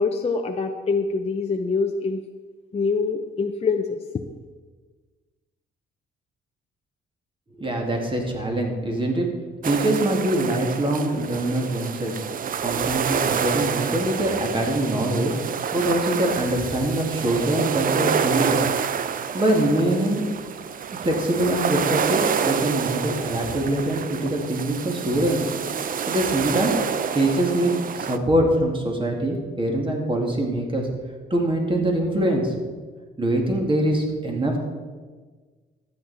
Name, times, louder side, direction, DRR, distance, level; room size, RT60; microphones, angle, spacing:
voice 1, 0.0-2.2 2.7-4.0, left 4 dB, 30° left, 4 dB, 0.7 m, -24 dB
voice 2, 7.6-9.3 9.6-12.1 12.6-15.3 15.7-18.6 19.3-20.2 21.0-25.4 26.1-26.7 27.1-30.9 31.3-32.5 33.2-34.6, right 1 dB, 25° right, 1 dB, 2.4 m, -23 dB
sound 1, 9.6-28.2, right 7 dB, 45° right, 0.5 m, -28 dB
12.5 x 8.9 x 4.3 m, 1.4 s
cardioid pair, 90°, 20 cm